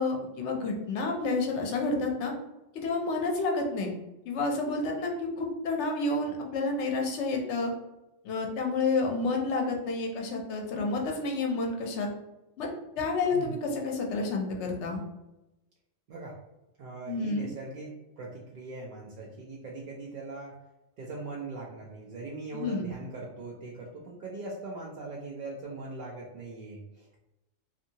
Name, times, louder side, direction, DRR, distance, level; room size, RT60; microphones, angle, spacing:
voice 1, 0.0-2.3 2.7-3.9 4.3-7.7 8.2-12.1 12.6-12.7 13.0-15.0 17.1-17.5 22.5-22.9, left 3 dB, 70° left, 1 dB, 0.9 m, -30 dB
voice 2, 13.3-13.6 16.1-16.3 16.8-20.5 21.0-27.1, right 3 dB, 60° right, -4 dB, 0.5 m, -40 dB
2.6 x 2.6 x 2.7 m, 0.95 s
omnidirectional pair, 1.3 m